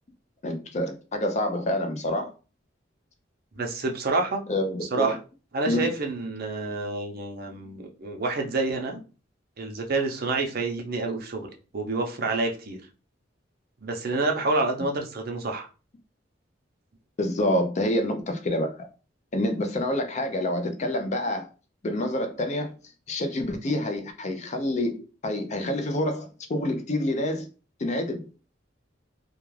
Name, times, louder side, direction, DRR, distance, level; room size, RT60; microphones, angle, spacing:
voice 1, 0.4-2.3 4.5-5.2 5.7-5.9 17.2-18.9 19.3-21.5 21.8-22.7 23.1-27.5 27.8-28.3, left 1 dB, 40° left, 0.5 m, -27 dB
voice 2, 3.6-4.4 4.9-5.2 5.5-9.0 9.6-11.5 11.7-12.8 13.8-15.7, right 3 dB, 55° right, 0.6 m, -28 dB
2.3 x 2.3 x 3.1 m
head